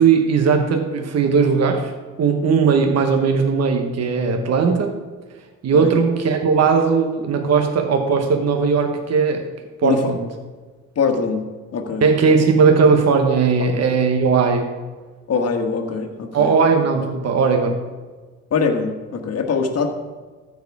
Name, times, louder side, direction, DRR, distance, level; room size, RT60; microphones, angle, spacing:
voice 1, 0.0-1.9 2.2-5.0 5.6-9.4 9.8-10.3 12.0-14.7 16.3-17.8, right 5 dB, 55° right, 4 dB, 1.2 m, -18 dB
voice 2, 11.0-12.0 15.3-16.6 18.5-19.9, left 5 dB, 55° left, 4 dB, 1.3 m, -22 dB
14.0 x 4.8 x 4.8 m, 1.3 s
cardioid pair, 90°, 30 cm